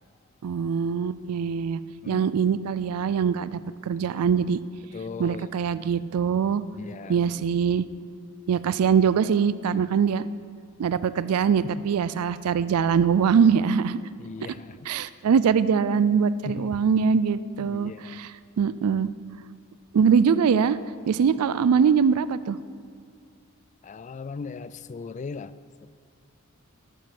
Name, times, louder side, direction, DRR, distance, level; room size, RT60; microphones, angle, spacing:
voice 1, 0.4-1.8 2.1-4.6 5.2-6.6 7.1-7.9 8.5-10.3 10.8-14.0 14.9-19.1 19.9-20.8 21.1-22.6, right 6 dB, 75° right, 16 dB, 0.4 m, -23 dB
voice 2, 2.0-2.4 4.9-5.5 6.7-7.4 11.6-11.8 14.2-14.9 16.4-16.8 17.6-18.3 23.8-25.5 25.8-25.9, left 4 dB, 35° left, 16 dB, 0.3 m, -38 dB
11.5 x 9.2 x 5.9 m, 2.2 s
head